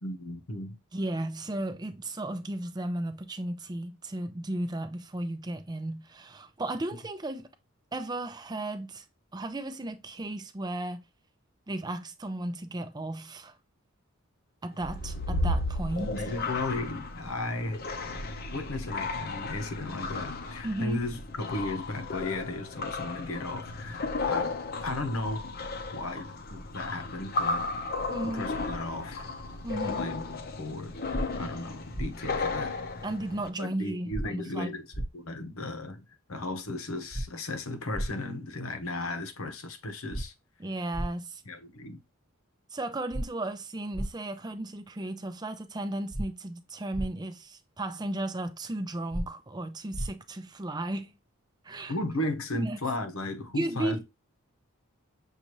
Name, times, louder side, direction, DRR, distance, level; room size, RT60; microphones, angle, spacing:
voice 1, 0.0-0.8 16.1-17.8 18.5-25.4 25.9-27.7 28.2-29.3 30.0-32.7 33.6-36.0 36.3-40.3 41.4-42.0 51.9-54.0, left 2 dB, 75° left, 0.9 m, -35 dB
voice 2, 0.9-7.5 7.9-9.0 9.3-11.0 11.7-13.5 14.6-16.3 20.6-21.0 28.1-28.5 29.6-30.1 33.0-34.7 40.6-41.4 42.7-51.1 51.6-51.9 52.5-52.8 53.5-54.0, right 1 dB, 20° right, 0.5 m, -35 dB
sound 1, 14.8-33.5, left 3 dB, 45° left, 0.7 m, -34 dB
sound 2, 31.1-31.2 31.9-32.1 34.1-34.3 34.9-35.1 37.1-37.3 37.9-38.1 40.1-40.2 40.9-41.1 43.1-43.2 43.9-44.1 46.1-46.3 46.9-47.1 49.1-49.2 49.9-50.1, right 1 dB, 15° left, 1.4 m, -32 dB
6.5 x 2.6 x 3.0 m
head